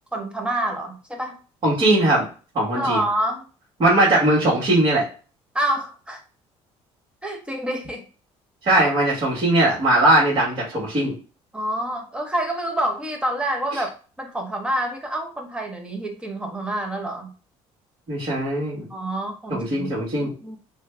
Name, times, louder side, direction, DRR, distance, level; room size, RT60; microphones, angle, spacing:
voice 1, 0.1-1.4 2.8-3.4 5.5-6.2 7.2-8.0 11.5-13.9 14.2-17.3 18.9-19.9 20.2-20.6, right 1 dB, 10° right, 2 dB, 0.9 m, -27 dB
voice 2, 1.6-2.3 2.5-3.0 3.8-5.1 8.6-11.1 13.7-13.8 18.1-18.9 19.5-20.3, right 1 dB, 45° right, -8 dB, 1.7 m, -19 dB
3.1 x 2.3 x 3.3 m, 0.37 s
cardioid pair, 105°, 12 cm